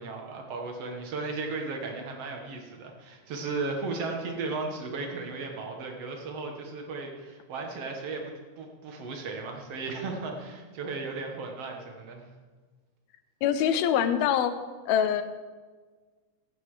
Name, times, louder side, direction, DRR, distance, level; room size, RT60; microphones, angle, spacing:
voice 1, 0.0-12.3, right 3 dB, 55° right, 2 dB, 2.0 m, -35 dB
voice 2, 13.4-14.5 14.9-15.2, left 9 dB, 90° left, 11 dB, 2.6 m, -24 dB
15.5 x 8.7 x 4.9 m, 1.4 s
omnidirectional pair, 4.2 m